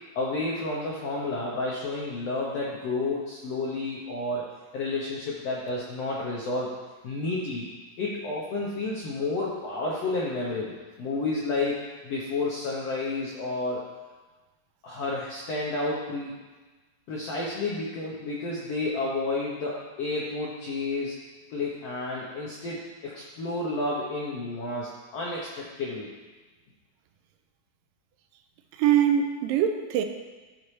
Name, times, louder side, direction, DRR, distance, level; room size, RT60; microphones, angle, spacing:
voice 1, 0.1-4.4 4.7-6.7 7.0-7.7 8.0-13.8 14.8-16.3 17.1-21.1 21.5-26.1, left 2 dB, 80° left, -4 dB, 1.4 m, -31 dB
voice 2, 28.7-30.0, right 9 dB, 80° right, 6 dB, 2.2 m, -23 dB
12.5 x 4.3 x 3.2 m, 1.3 s
omnidirectional pair, 4.0 m